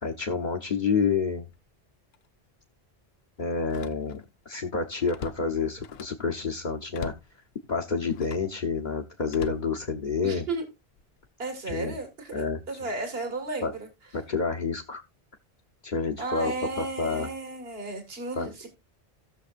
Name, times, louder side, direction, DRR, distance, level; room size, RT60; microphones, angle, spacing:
voice 1, 0.0-1.5 3.4-7.1 7.7-10.5 11.7-12.0 12.3-12.6 13.6-13.7 14.1-15.0 15.8-17.3 18.4-18.5, left 5 dB, 50° left, 1.1 m, -29 dB
Slam, 1.4-1.7 2.1-2.3 3.6-4.4 4.7-6.3 6.9-7.4 8.1-8.6 9.3-10.4 11.0-11.3, left 8 dB, 80° left, 0.9 m, -43 dB
voice 2, 10.2-10.7 11.4-13.9 16.2-18.7, right 3 dB, 75° right, 2.1 m, -34 dB
17.0 x 6.5 x 2.5 m
omnidirectional pair, 1.0 m